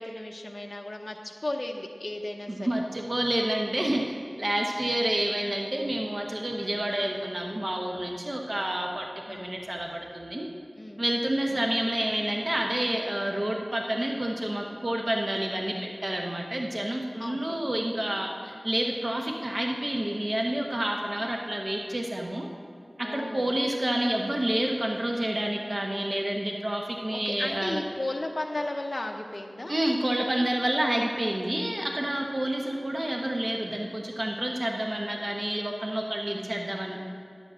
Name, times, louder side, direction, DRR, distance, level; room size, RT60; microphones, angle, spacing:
voice 1, 0.0-2.7 4.8-5.1 6.6-6.8 9.3-9.6 10.7-11.0 11.5-11.7 17.2-17.6 23.0-23.6 27.1-29.7, left 1 dB, 50° left, 1 dB, 0.7 m, -35 dB
voice 2, 2.5-4.0 4.4-10.5 11.0-22.5 23.0-27.8 29.7-37.0, right 1 dB, 50° right, 1 dB, 1.0 m, -29 dB
10.5 x 8.0 x 6.3 m, 2.4 s
wide cardioid pair, 50°, 0 cm